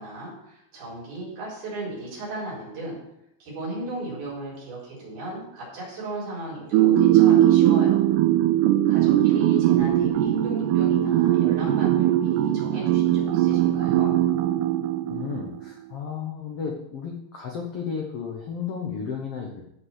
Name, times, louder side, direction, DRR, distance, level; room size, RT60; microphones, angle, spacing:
voice 1, 0.0-3.0 3.4-8.1 8.9-14.2, right 2 dB, 70° right, -5 dB, 6.2 m, -36 dB
sound 1, 6.7-15.5, right 12 dB, 90° right, 2.8 m, -20 dB
voice 2, 15.1-19.6, left 6 dB, 90° left, 1 dB, 1.3 m, -33 dB
14.5 x 5.5 x 5.8 m, 0.80 s
omnidirectional pair, 4.6 m